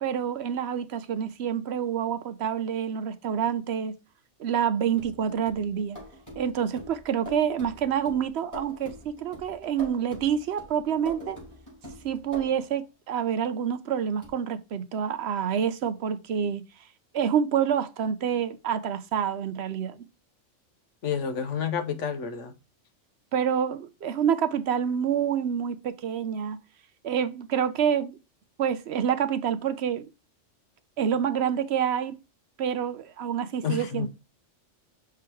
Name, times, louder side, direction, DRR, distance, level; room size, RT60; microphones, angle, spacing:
voice 1, 0.0-3.9 4.4-6.0 6.4-11.4 12.0-16.6 17.1-20.0 23.3-26.6 27.0-28.2 28.6-30.1 31.0-32.2 32.6-34.1, right 8 dB, 65° right, 0.9 m, -27 dB
sound 1, 5.0-12.8 14.2-14.3, equal, 15° left, 3.8 m, -45 dB
voice 2, 21.0-22.5 33.6-34.1, left 7 dB, 75° left, 1.2 m, -29 dB
5.9 x 3.8 x 4.4 m
omnidirectional pair, 1.3 m